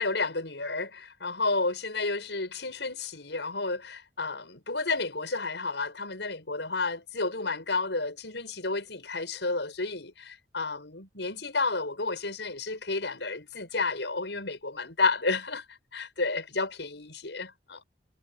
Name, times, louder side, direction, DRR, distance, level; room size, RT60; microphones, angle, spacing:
voice 1, 0.0-17.8, left 3 dB, 80° left, 6.4 m, -31 dB
head